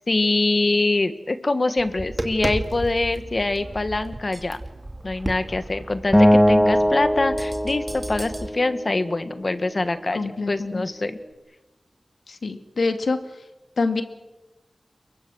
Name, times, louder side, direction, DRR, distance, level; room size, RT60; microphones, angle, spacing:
voice 1, 0.1-4.6 5.0-10.2 10.5-11.2, left 2 dB, 45° left, 10 dB, 1.7 m, -24 dB
Tap, 1.8-8.5, right 1 dB, 25° right, 2.4 m, -34 dB
Acoustic guitar, 6.1-9.4, equal, 5° left, 2.2 m, -20 dB
voice 2, 10.1-10.9 12.3-13.2 13.8-14.0, left 3 dB, 85° left, 7 dB, 2.1 m, -25 dB
28.0 x 23.0 x 6.4 m, 1.0 s
wide cardioid pair, 75°, 0 cm